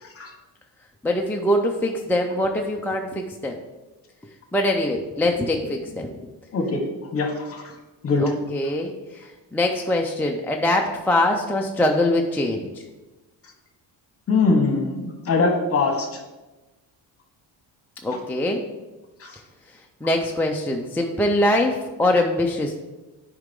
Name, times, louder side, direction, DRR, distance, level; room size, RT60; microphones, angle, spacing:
voice 1, 1.0-3.6 4.5-6.1 8.2-12.8 18.0-18.6 19.7-22.8, left 1 dB, 5° left, 1 dB, 0.4 m, -23 dB
voice 2, 7.1-7.7 8.0-8.2 14.3-16.2 19.2-19.4, left 3 dB, 35° left, 4 dB, 1.2 m, -22 dB
9.6 x 5.0 x 3.7 m, 1.1 s
cardioid pair, 150°, 42 cm